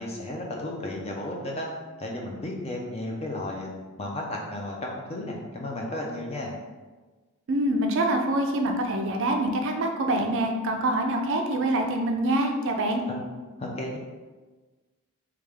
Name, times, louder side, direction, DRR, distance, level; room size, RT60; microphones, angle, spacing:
voice 1, 0.0-1.7 2.0-3.7 4.0-6.5 13.1-13.2 13.6-14.0, left 1 dB, 30° left, -1 dB, 0.5 m, -33 dB
voice 2, 7.5-13.0, right 1 dB, 55° right, 3 dB, 0.4 m, -25 dB
3.2 x 2.4 x 3.4 m, 1.3 s
head